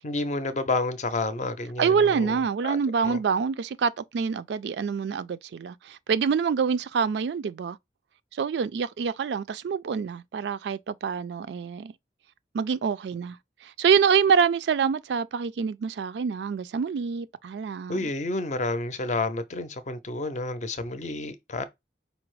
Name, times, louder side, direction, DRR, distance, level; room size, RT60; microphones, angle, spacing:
voice 1, 0.0-2.3 2.6-2.8 3.0-3.2 17.9-21.6, left 2 dB, 40° left, 0.6 m, -30 dB
voice 2, 1.8-7.8 8.3-11.9 12.5-18.1, right 6 dB, 75° right, 0.3 m, -26 dB
4.9 x 2.0 x 4.6 m
head